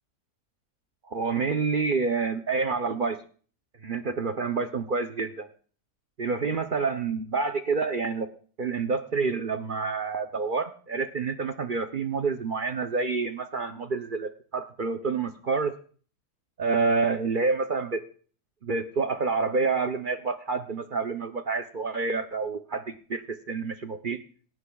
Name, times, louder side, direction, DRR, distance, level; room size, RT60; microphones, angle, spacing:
voice 1, 1.1-3.2 3.8-5.5 6.2-8.3 8.6-15.7 16.6-18.0 18.6-24.2, right 4 dB, 55° right, 8 dB, 0.5 m, -28 dB
27.0 x 11.0 x 2.3 m, 0.43 s
omnidirectional pair, 1.7 m